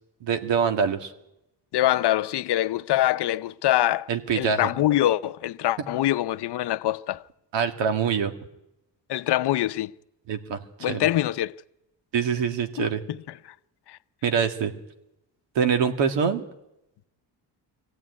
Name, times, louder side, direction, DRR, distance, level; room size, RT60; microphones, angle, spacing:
voice 1, 0.2-1.1 4.1-4.7 7.5-8.3 10.3-10.6 10.9-11.1 12.1-13.0 14.2-14.7 15.6-16.4, right 6 dB, 80° right, 2.2 m, -24 dB
voice 2, 1.7-4.1 4.3-7.2 9.1-9.9 10.8-11.6 12.8-13.2 13.9-14.0, left 14 dB, 65° left, 0.7 m, -24 dB
23.0 x 16.0 x 9.7 m
cardioid pair, 120°, 43 cm